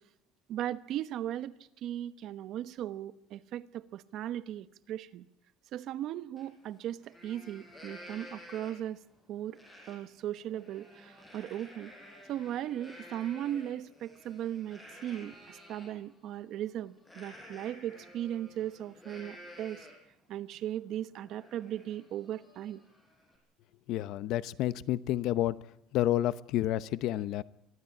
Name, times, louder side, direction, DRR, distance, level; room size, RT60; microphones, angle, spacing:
voice 1, 0.5-1.5 1.8-5.3 5.7-9.0 9.3-9.6 9.9-11.9 12.3-19.9 20.3-22.8, right 11 dB, 50° right, 13 dB, 1.0 m, -37 dB
Livestock farm animals working animals, 6.4-6.5 6.9-9.0 9.5-10.0 10.4-15.9 17.0-20.1 20.5-20.6 21.0-23.4, equal, 10° left, 5.1 m, -52 dB
voice 2, 23.9-25.6 25.9-27.4, left 13 dB, 60° left, 16 dB, 0.8 m, -30 dB
23.5 x 15.0 x 8.5 m, 0.83 s
cardioid pair, 155°, 0 cm